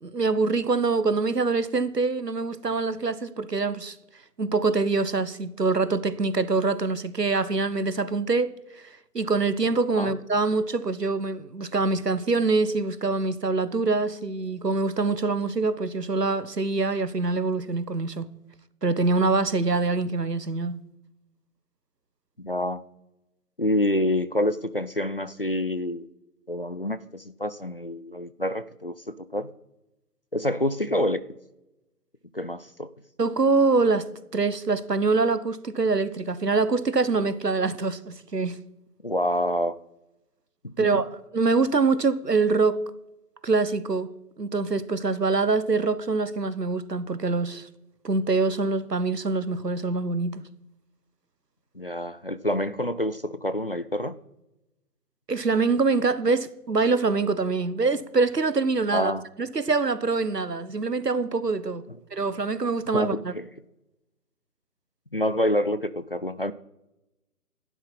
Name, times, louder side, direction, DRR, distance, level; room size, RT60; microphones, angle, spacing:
voice 1, 0.0-3.9 4.4-8.5 9.1-18.3 18.8-20.8 33.2-38.6 40.8-42.8 43.4-44.1 44.4-47.7 48.0-50.4 55.3-59.1 59.4-61.8 62.1-63.3, right 3 dB, 90° right, 1.4 m, -24 dB
voice 2, 22.4-22.8 23.6-26.1 26.5-29.5 30.3-31.2 32.3-32.9 39.0-39.7 40.6-41.0 51.8-54.2 58.9-59.2 62.9-63.5 65.1-66.5, left 1 dB, 40° left, 0.5 m, -27 dB
17.0 x 11.5 x 4.2 m
figure-of-eight pair, 155°, 47 cm